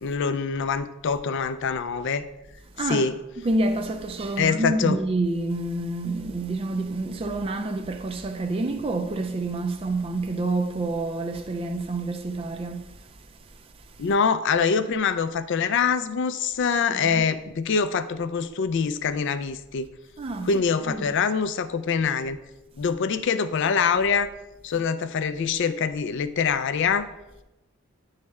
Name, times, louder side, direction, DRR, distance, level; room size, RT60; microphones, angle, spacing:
voice 1, 0.0-2.3 2.8-3.1 4.4-5.0 14.0-19.9 20.4-22.4 22.8-24.3 24.6-27.1, left 6 dB, 55° left, 0.4 m, -24 dB
voice 2, 3.4-12.9 16.9-17.2 20.2-21.2, right 2 dB, 25° right, 0.3 m, -28 dB
9.5 x 3.2 x 3.5 m
head